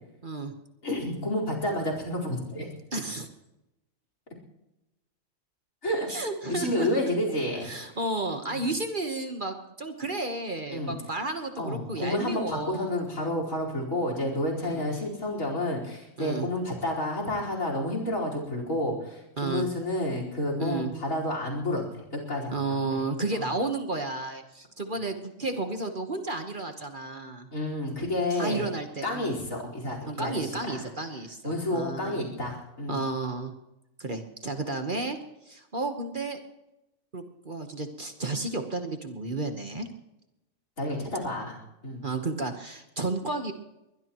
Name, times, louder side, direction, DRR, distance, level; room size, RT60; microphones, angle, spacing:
voice 1, 0.2-0.5 2.9-3.3 6.1-6.9 7.6-12.9 14.6-14.8 16.2-16.5 19.4-19.7 20.6-20.9 22.5-27.5 28.3-29.4 30.1-32.2 32.9-33.5 34.0-35.2 35.5-36.4 37.1-39.9 42.0-43.5, right 3 dB, 40° right, 6 dB, 1.4 m, -32 dB
voice 2, 0.8-2.7 5.8-6.1 6.5-7.7 8.5-8.6 10.7-10.9 11.6-22.6 22.9-23.0 23.3-23.5 27.5-28.6 29.0-30.8 31.4-33.0 40.8-41.6 41.8-42.0, left 1 dB, 70° left, 2 dB, 5.0 m, -30 dB
22.0 x 21.0 x 3.1 m, 0.93 s
omnidirectional pair, 1.4 m